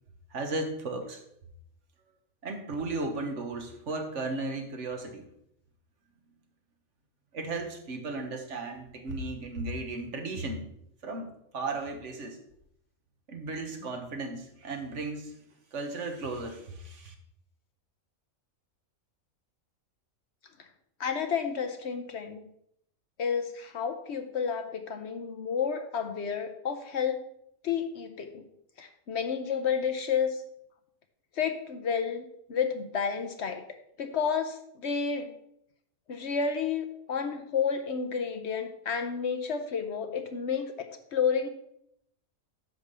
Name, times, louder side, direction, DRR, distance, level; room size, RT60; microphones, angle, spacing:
voice 1, 0.3-1.2 2.4-5.3 7.3-10.7 11.0-12.4 13.3-15.3 15.7-17.1, right 2 dB, 60° right, 4 dB, 1.4 m, -35 dB
voice 2, 21.0-22.5 23.2-27.2 27.6-28.5 28.8-30.4 31.3-33.6 34.0-35.4 36.1-41.5, left 6 dB, 60° left, 7 dB, 0.9 m, -31 dB
10.0 x 3.5 x 6.7 m, 0.75 s
omnidirectional pair, 1.4 m